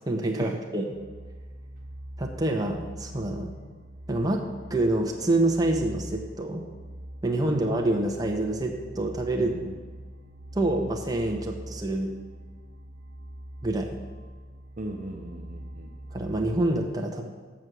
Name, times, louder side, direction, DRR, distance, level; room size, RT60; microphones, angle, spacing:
voice 1, 0.0-0.8 2.2-3.5 4.1-4.4 4.7-6.6 7.2-9.6 10.5-12.1 13.6-14.0 16.1-17.3, right 1 dB, 20° right, 0 dB, 0.9 m, -26 dB
sound 1, 0.9-16.7, right 1 dB, 80° right, 0.9 m, -43 dB
voice 2, 9.4-9.8 14.8-16.0, right 1 dB, 40° right, 1 dB, 0.6 m, -38 dB
7.3 x 6.2 x 6.7 m, 1.5 s
head